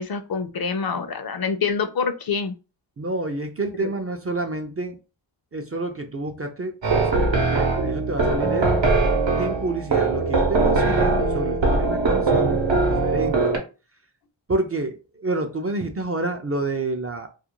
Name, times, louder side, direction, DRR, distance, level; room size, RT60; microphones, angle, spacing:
voice 1, 0.0-2.5 3.8-3.9, left 5 dB, 55° left, 8 dB, 0.5 m, -26 dB
voice 2, 3.0-4.9 5.5-8.7 9.4-13.4 14.5-15.0 15.2-17.3, right 2 dB, 35° right, 4 dB, 0.4 m, -28 dB
sound 1, 6.8-13.6, right 3 dB, 70° right, 0.8 m, -21 dB
2.3 x 2.2 x 2.9 m, 0.31 s
wide cardioid pair, 75°, 46 cm